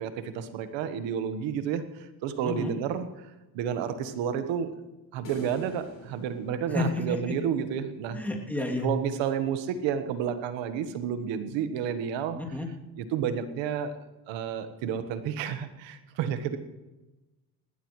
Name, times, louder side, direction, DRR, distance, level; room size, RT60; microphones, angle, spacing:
voice 1, 0.0-1.8 2.2-3.1 3.5-4.7 5.1-8.2 8.8-12.4 13.0-14.0 14.3-16.6, right 8 dB, 85° right, 10 dB, 1.4 m, -30 dB
voice 2, 2.4-2.7 6.7-7.3 8.1-8.9 12.3-12.7, left 2 dB, 5° left, -1 dB, 2.8 m, -31 dB
sound 1, 5.2-7.6, left 4 dB, 45° left, 3.9 m, -47 dB
19.0 x 17.0 x 3.2 m, 1.1 s
cardioid pair, 100°, 44 cm